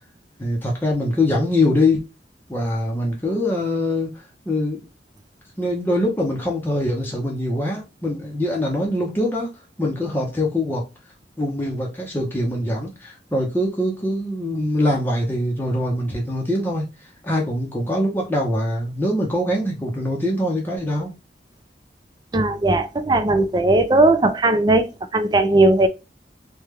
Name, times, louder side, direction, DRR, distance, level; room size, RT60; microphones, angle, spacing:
voice 1, 0.4-2.0 2.5-4.8 5.6-9.5 9.8-10.8 11.4-16.9 17.2-21.1, left 1 dB, 10° left, 0.6 m, -23 dB
voice 2, 22.3-25.9, right 2 dB, 25° right, 0.3 m, -18 dB
3.2 x 2.2 x 3.4 m
head